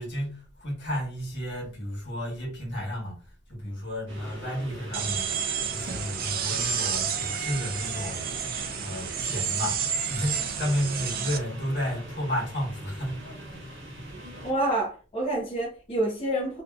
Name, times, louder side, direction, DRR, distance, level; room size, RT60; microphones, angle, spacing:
voice 1, 0.0-3.2 3.5-5.4 5.7-8.3 8.8-9.8 10.1-13.2 13.5-13.6, equal, 60° left, 1.3 m, -32 dB
sound 1, 4.1-14.5, right 1 dB, 70° right, 0.9 m, -42 dB
sound 2, 4.9-11.4, right 7 dB, 50° right, 0.4 m, -30 dB
voice 2, 14.4-16.6, right 1 dB, 30° left, 0.7 m, -28 dB
2.8 x 2.5 x 2.3 m
head